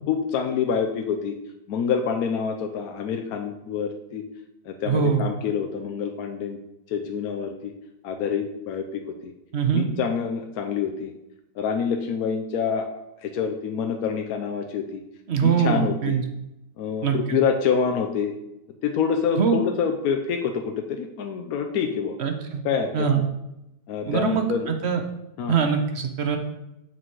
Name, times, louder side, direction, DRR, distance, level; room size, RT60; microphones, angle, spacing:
voice 1, 0.1-1.3 1.7-4.2 4.7-6.6 6.9-7.7 8.0-9.3 9.7-11.1 11.6-12.9 13.2-15.0 15.4-16.2 16.8-18.3 18.8-22.1 22.6-22.9 23.9-24.7 25.4-25.5, left 6 dB, 65° left, 3 dB, 1.0 m, -26 dB
voice 2, 4.9-5.2 9.5-9.8 15.3-16.2 17.0-17.4 19.4-19.6 22.2-22.6 22.9-23.2 24.0-25.0 25.5-26.4, right 7 dB, 50° right, 6 dB, 0.8 m, -23 dB
7.5 x 6.2 x 4.6 m, 0.90 s
omnidirectional pair, 2.0 m